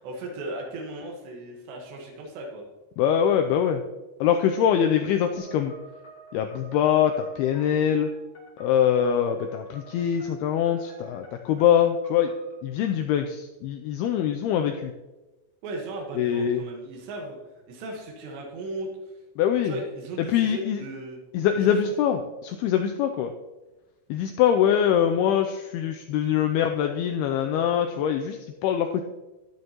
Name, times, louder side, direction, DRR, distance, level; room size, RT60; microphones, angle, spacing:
voice 1, 0.0-2.7 15.6-17.4 17.7-19.1 19.6-21.2 21.6-21.9, right 2 dB, 80° right, 1 dB, 3.6 m, -36 dB
voice 2, 3.0-3.8 4.2-5.7 6.3-8.1 8.6-12.3 12.6-14.9 16.2-16.6 19.4-19.7 20.2-20.8 21.3-23.3 24.1-29.0, left 9 dB, 85° left, 5 dB, 2.3 m, -23 dB
sound 1, 5.3-12.6, right 1 dB, 20° left, 2.6 m, -48 dB
13.0 x 9.3 x 2.9 m, 1.1 s
omnidirectional pair, 5.0 m